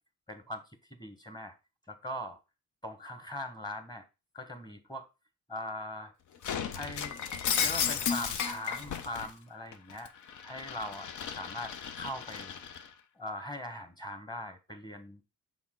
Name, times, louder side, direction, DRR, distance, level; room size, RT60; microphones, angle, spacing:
voice 1, 0.3-0.6 1.0-1.5 1.9-2.4 2.8-4.0 4.3-5.0 5.5-6.1 6.7-7.2 7.6-10.1 10.4-12.8 13.2-15.2, left 1 dB, 10° left, 7 dB, 1.4 m, -41 dB
Shatter, 6.4-9.3 9.7-12.9, left 7 dB, 60° left, 0.8 m, -34 dB
5.9 x 4.3 x 3.8 m, 0.28 s
supercardioid pair, 60°, 34 cm